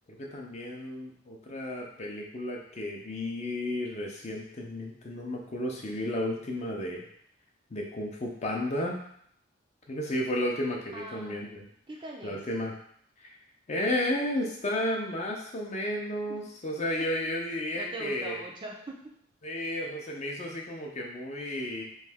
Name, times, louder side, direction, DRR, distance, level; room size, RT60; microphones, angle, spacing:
voice 1, 0.1-7.0 7.7-9.0 9.9-11.6 12.2-12.7 13.2-13.4 13.7-18.4 19.4-21.8, left 1 dB, 35° left, 0 dB, 0.5 m, -33 dB
voice 2, 10.9-11.4 11.9-12.4 16.3-16.5 17.7-19.2, right 2 dB, 25° right, -1 dB, 0.4 m, -42 dB
3.1 x 2.6 x 3.5 m, 0.68 s
head